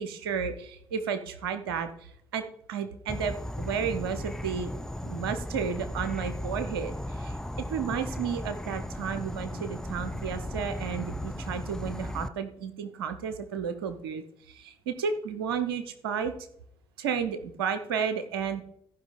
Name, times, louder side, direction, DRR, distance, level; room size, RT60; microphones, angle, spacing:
voice 1, 0.0-4.7 5.0-16.3 17.0-18.6, right 6 dB, 80° right, 10 dB, 0.8 m, -32 dB
Insect / Frog, 3.1-12.3, left 1 dB, 5° left, 0.7 m, -36 dB
14.5 x 5.4 x 4.2 m, 0.70 s
figure-of-eight pair, 40°, 12 cm